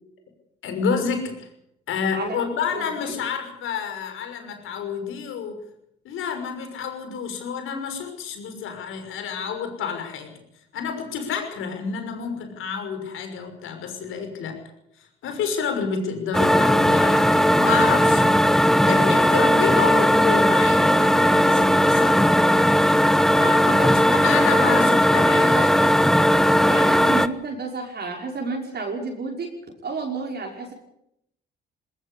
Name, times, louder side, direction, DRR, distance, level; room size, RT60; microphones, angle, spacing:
voice 1, 0.6-1.5 1.9-5.6 6.0-10.3 10.7-14.6 15.0-18.3 18.9-22.5 23.3-25.9 26.6-26.9, left 6 dB, 75° left, 6 dB, 6.1 m, -29 dB
voice 2, 2.7-3.1 23.6-24.0 24.3-24.8 25.1-25.7 26.6-29.5 29.8-30.7, right 3 dB, 50° right, 0 dB, 5.7 m, -31 dB
sound 1, 16.3-27.3, equal, ahead, 1.2 m, -17 dB
20.0 x 19.0 x 8.5 m, 0.78 s
supercardioid pair, 60°, 21 cm